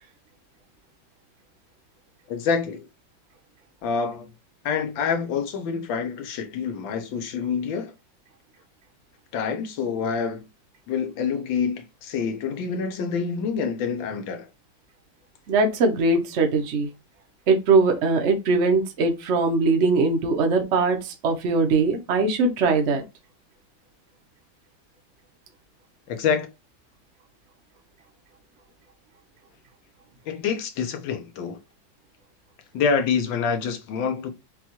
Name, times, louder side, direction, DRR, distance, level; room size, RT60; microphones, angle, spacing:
voice 1, 2.3-2.9 3.8-4.3 4.6-7.9 9.3-10.5 10.9-14.5 26.1-26.5 30.3-31.6 32.7-34.3, left 6 dB, 90° left, 1.5 m, -27 dB
voice 2, 15.5-16.9 17.5-23.0, right 3 dB, 55° right, 0.8 m, -21 dB
5.8 x 2.3 x 2.9 m
omnidirectional pair, 2.1 m